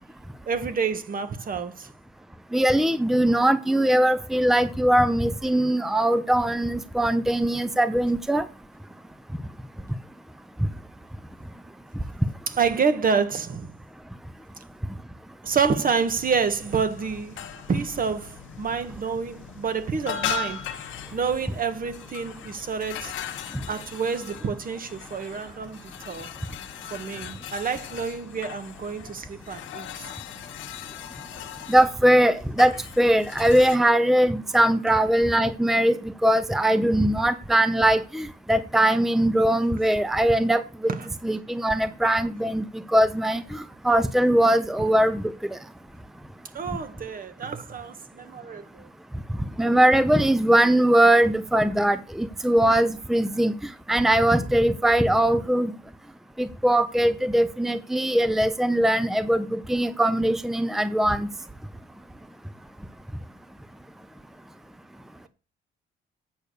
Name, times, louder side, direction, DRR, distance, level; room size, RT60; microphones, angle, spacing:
voice 1, 0.5-1.9 12.5-13.7 15.4-17.4 17.7-23.1 23.7-26.3 26.9-30.1 40.9-41.1 46.5-48.9, right 5 dB, 45° right, 1.5 m, -28 dB
voice 2, 2.5-8.5 31.7-40.9 41.2-45.6 49.6-53.5 53.9-55.7 56.4-61.3, right 1 dB, ahead, 0.7 m, -21 dB
sound 1, 16.0-33.8, left 7 dB, 85° left, 1.5 m, -38 dB
8.7 x 6.6 x 6.7 m
cardioid pair, 90°, 20 cm